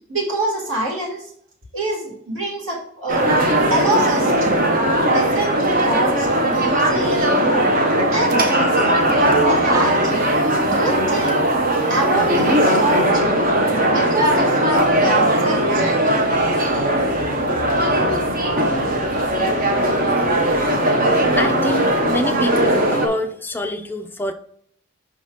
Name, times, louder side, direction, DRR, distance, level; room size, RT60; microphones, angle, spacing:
voice 1, 0.1-1.2 1.7-3.3 3.7-4.8 5.1-7.7 8.1-10.3 10.6-11.5 11.9-13.5 13.9-16.0, right 2 dB, 60° right, -2 dB, 2.6 m, -26 dB
sound 1, 3.1-23.1, right 1 dB, 40° right, 0.9 m, -18 dB
voice 2, 21.4-24.3, left 1 dB, 10° left, 6 dB, 0.4 m, -26 dB
5.7 x 4.0 x 4.7 m, 0.66 s
head